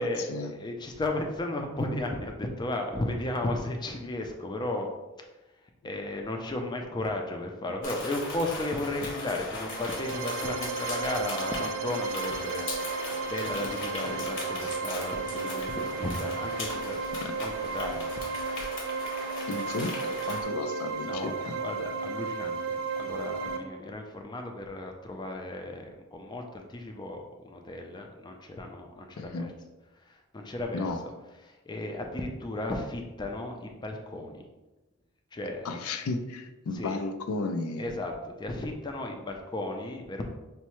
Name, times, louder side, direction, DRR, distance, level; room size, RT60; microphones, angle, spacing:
voice 1, 0.0-4.9 5.8-17.0 17.3-18.2 21.1-29.5 30.0-30.9 31.4-34.5 35.3-35.9 36.7-37.0 37.8-40.3, left 1 dB, 20° left, 3 dB, 0.4 m, -34 dB
sound 1, 7.8-20.4, left 2 dB, 65° left, 0.9 m, -38 dB
sound 2, 9.5-23.6, right 5 dB, 60° right, 0.4 m, -34 dB
voice 2, 19.5-21.6 29.2-29.5 30.7-31.0 35.6-38.0, left 3 dB, 90° left, 7 dB, 0.4 m, -33 dB
5.4 x 2.1 x 3.0 m, 1.1 s
head